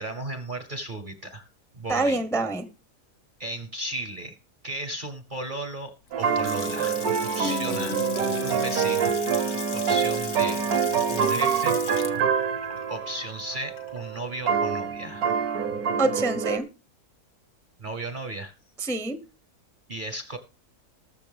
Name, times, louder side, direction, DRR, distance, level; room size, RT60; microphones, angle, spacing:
voice 1, 0.0-1.5 1.7-2.2 3.4-4.4 4.6-5.9 6.2-8.0 8.4-11.8 12.9-15.3 17.8-18.5 19.9-20.4, right 1 dB, 40° right, 8 dB, 0.9 m, -35 dB
voice 2, 1.9-2.6 7.4-8.0 16.0-16.6 18.8-19.2, right 2 dB, 5° left, 11 dB, 0.7 m, -26 dB
Water tap faucet / Sink (filling or washing) / Splash splatter, 6.1-14.2, left 8 dB, 70° left, 1.4 m, -39 dB
sound 1, 6.1-16.6, right 6 dB, 70° right, 1.5 m, -26 dB
20.0 x 6.7 x 3.5 m, 0.31 s
omnidirectional pair, 1.7 m